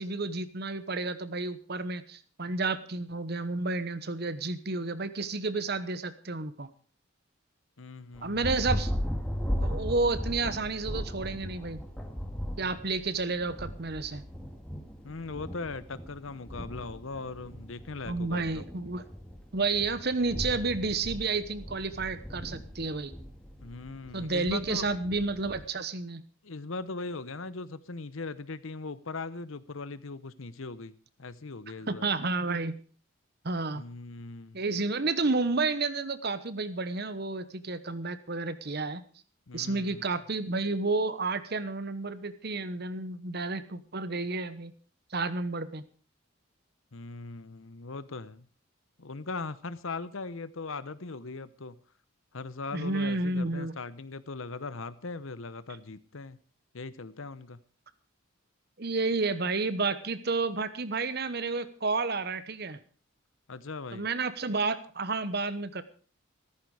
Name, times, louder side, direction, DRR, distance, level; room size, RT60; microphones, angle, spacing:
voice 1, 0.0-6.7 8.2-8.9 9.6-11.8 12.6-14.2 18.1-19.0 19.5-23.1 24.1-26.2 31.9-32.8 33.4-33.8 34.5-39.0 39.5-44.7 45.1-45.8 52.7-53.7 58.8-62.8 63.9-65.8, right 3 dB, 50° right, 14 dB, 1.1 m, -31 dB
voice 2, 7.8-8.5 15.0-18.7 23.6-24.9 26.4-32.1 33.7-34.6 39.5-40.1 46.9-48.5 49.0-51.8 52.3-56.4 56.7-57.6 63.5-64.1, left 3 dB, 70° left, 16 dB, 0.9 m, -39 dB
Thunder, 8.2-25.7, equal, 5° left, 2.2 m, -37 dB
14.5 x 14.0 x 4.9 m, 0.41 s
head